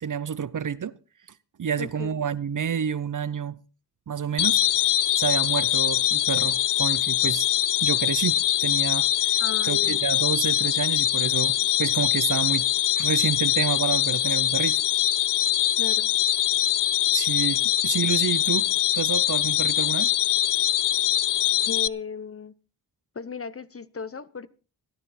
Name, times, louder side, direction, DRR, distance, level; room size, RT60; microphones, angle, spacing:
voice 1, 0.0-1.0 1.6-3.6 4.1-4.6 5.2-7.5 7.8-9.3 9.7-12.7 13.0-14.8 17.1-18.7 18.9-20.1, right 7 dB, 50° right, 0.7 m, -29 dB
voice 2, 1.8-2.2 9.4-10.1 15.8-16.1 21.6-22.5 23.1-24.5, left 5 dB, 35° left, 0.8 m, -35 dB
sound 1, 4.4-21.9, left 12 dB, 85° left, 0.6 m, -23 dB
16.0 x 12.5 x 4.1 m
wide cardioid pair, 140°, 40 cm